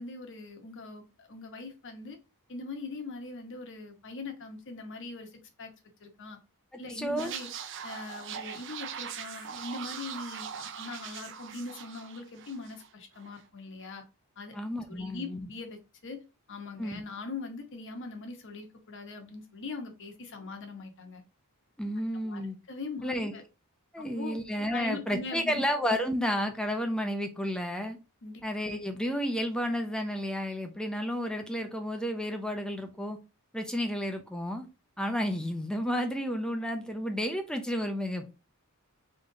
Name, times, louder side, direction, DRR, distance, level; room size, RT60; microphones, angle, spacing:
voice 1, 0.0-2.2 2.5-5.7 6.0-6.4 6.7-7.5 7.8-14.0 14.4-14.6 14.9-16.2 16.5-21.2 22.2-22.4 22.7-23.4 24.0-24.4 24.7-25.6 28.2-28.4, left 3 dB, 55° left, 1.1 m, -41 dB
voice 2, 6.9-7.3 14.5-15.5 16.8-17.0 21.8-22.6 23.0-23.3 23.9-28.0 28.4-33.2 33.5-34.7 35.0-38.3, equal, 5° left, 0.7 m, -31 dB
sound 1, 7.2-12.9 13.2-13.4, right 7 dB, 55° right, 0.5 m, -41 dB
4.0 x 3.2 x 3.8 m
head